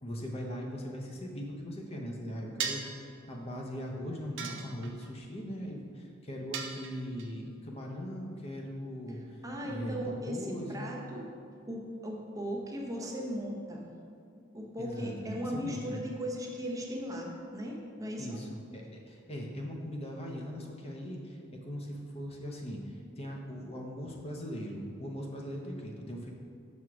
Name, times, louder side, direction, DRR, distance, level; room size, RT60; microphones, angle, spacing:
voice 1, 0.0-9.4 9.6-10.9 14.8-16.0 18.2-26.3, equal, 30° left, 0 dB, 0.7 m, -40 dB
sound 1, 2.6-3.0 4.4-5.1 6.5-7.3, right 6 dB, 65° right, 0.6 m, -37 dB
voice 2, 9.4-11.3 11.7-13.9 14.3-18.4, equal, 15° right, -1 dB, 0.7 m, -37 dB
6.2 x 3.6 x 5.9 m, 2.4 s
head